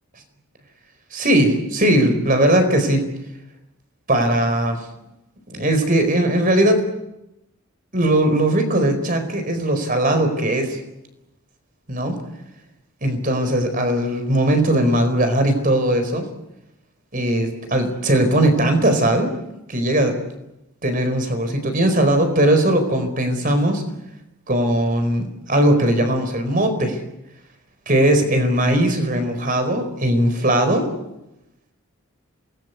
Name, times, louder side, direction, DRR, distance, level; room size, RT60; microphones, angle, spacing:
voice 1, 1.1-3.0 4.1-4.8 5.5-6.8 7.9-10.8 11.9-12.1 13.0-16.2 17.1-19.3 19.7-20.1 20.8-23.8 24.5-27.0 27.9-30.9, right 1 dB, 40° right, 7 dB, 4.5 m, -19 dB
27.5 x 20.0 x 8.4 m, 0.90 s
head